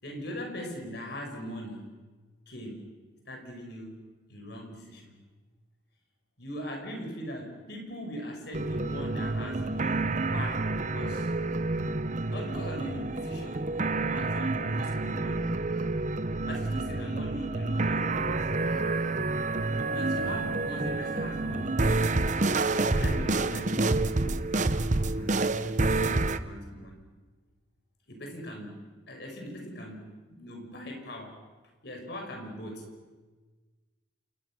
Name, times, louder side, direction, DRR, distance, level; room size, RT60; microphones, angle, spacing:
voice 1, 0.0-1.9 2.5-2.9 3.3-3.9 4.3-5.2 6.4-11.3 12.3-13.8 14.1-15.5 16.5-18.5 19.9-21.9 22.9-25.3 25.7-27.1 28.1-31.4 31.8-32.9, equal, 55° left, 3 dB, 5.9 m, -41 dB
sound 1, 8.5-26.4, right 2 dB, 40° right, 0.8 m, -28 dB
29.0 x 28.0 x 6.2 m, 1.3 s
head